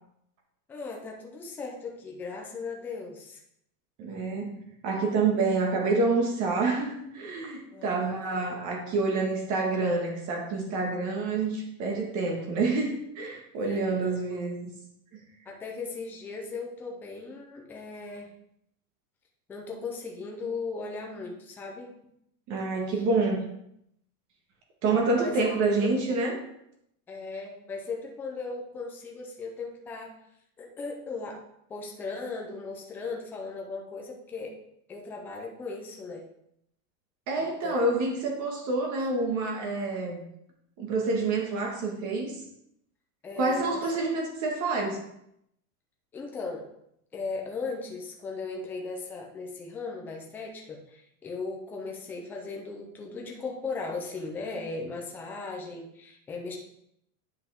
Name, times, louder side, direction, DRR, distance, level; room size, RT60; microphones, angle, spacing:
voice 1, 0.7-3.4 7.7-8.4 13.6-14.2 15.5-18.3 19.5-21.9 22.9-23.0 25.1-25.4 27.1-30.1 30.6-31.4 31.7-34.5 34.9-36.2 37.4-37.9 39.0-39.1 43.2-43.9 46.1-46.7 47.1-56.6, left 4 dB, 5° left, 0 dB, 0.3 m, -37 dB
voice 2, 4.0-4.6 4.8-14.7 15.1-15.2 22.5-23.5 24.8-26.4 37.3-40.2 40.8-42.4 43.4-45.1, right 3 dB, 40° right, 1 dB, 1.6 m, -27 dB
9.4 x 5.7 x 3.5 m, 0.75 s
supercardioid pair, 160°, 46 cm